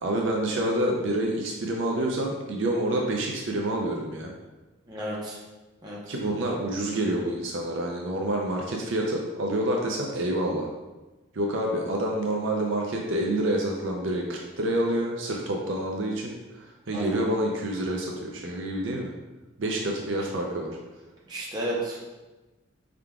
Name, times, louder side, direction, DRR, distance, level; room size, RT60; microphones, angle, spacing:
voice 1, 0.0-4.3 6.1-10.7 11.3-19.1 19.6-20.8, right 1 dB, 65° right, 0 dB, 0.5 m, -28 dB
voice 2, 4.9-5.4 5.8-6.0 16.9-17.2 21.3-22.0, right 1 dB, 20° right, -5 dB, 0.8 m, -32 dB
4.6 x 3.7 x 2.3 m, 1.1 s
head